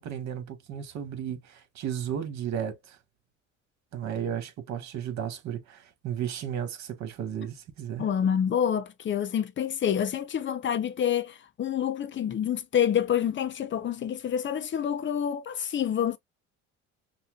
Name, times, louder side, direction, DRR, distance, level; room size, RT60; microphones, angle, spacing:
voice 1, 0.0-3.0 3.9-8.1, right 9 dB, 65° right, 1.7 m, -34 dB
voice 2, 8.0-16.2, left 9 dB, 40° left, 0.7 m, -27 dB
5.7 x 2.4 x 2.4 m
cardioid pair, 105°, 30 cm